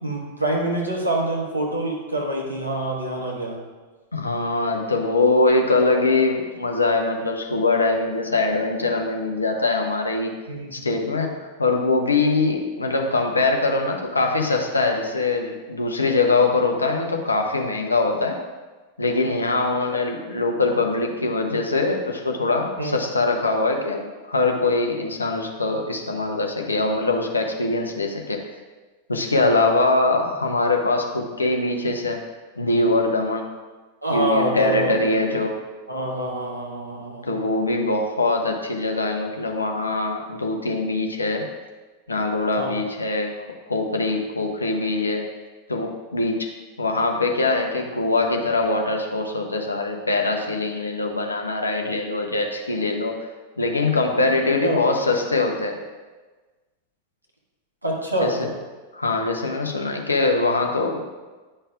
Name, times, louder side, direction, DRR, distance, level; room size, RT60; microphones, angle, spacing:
voice 1, 0.0-3.6 10.5-10.8 22.8-22.9 34.0-35.3 35.9-37.3 42.5-42.7 54.6-54.8 57.8-58.4, right 1 dB, 85° right, -2 dB, 1.2 m, -26 dB
voice 2, 4.1-10.3 10.7-18.4 19.0-28.4 29.1-32.2 32.6-33.4 34.1-35.5 37.2-41.5 42.1-43.4 43.7-45.2 45.7-46.5 46.8-53.2 53.6-55.8 58.2-58.5 58.9-61.0, left 3 dB, 80° left, 3 dB, 0.7 m, -22 dB
9.7 x 5.5 x 2.4 m, 1.3 s
figure-of-eight pair, 90°, 0 cm